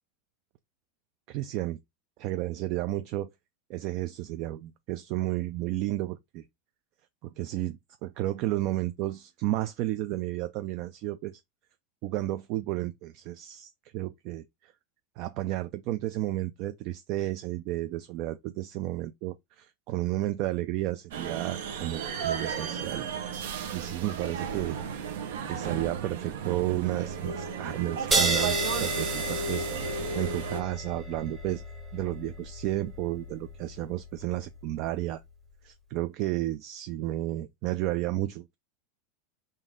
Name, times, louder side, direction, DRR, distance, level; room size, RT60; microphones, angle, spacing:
voice 1, 1.3-1.8 2.2-3.3 3.7-6.4 7.2-11.4 12.0-14.7 15.2-23.1 23.7-24.8 25.5-31.6 31.9-35.2 35.6-38.6, right 15 dB, 50° right, 0.4 m, -32 dB
sound 1, 21.1-30.6, right 5 dB, 75° right, 0.9 m, -33 dB
sound 2, 28.1-35.1, right 2 dB, 15° right, 0.9 m, -33 dB
3.9 x 2.6 x 3.6 m
supercardioid pair, 140°, 0 cm